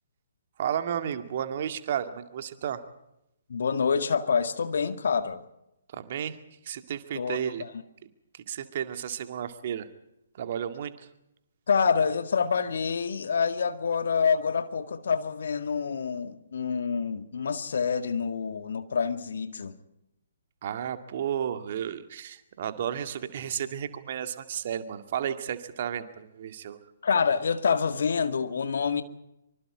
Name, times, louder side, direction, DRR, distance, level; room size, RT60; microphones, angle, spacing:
voice 1, 0.6-2.8 5.9-6.4 6.6-7.6 8.3-9.9 10.4-11.1 20.6-26.8, right 9 dB, 45° right, 2.1 m, -33 dB
voice 2, 3.5-5.4 7.1-7.7 11.7-19.8 27.0-29.0, left 6 dB, 60° left, 2.0 m, -27 dB
25.0 x 25.0 x 5.0 m
figure-of-eight pair, 130°, 0 cm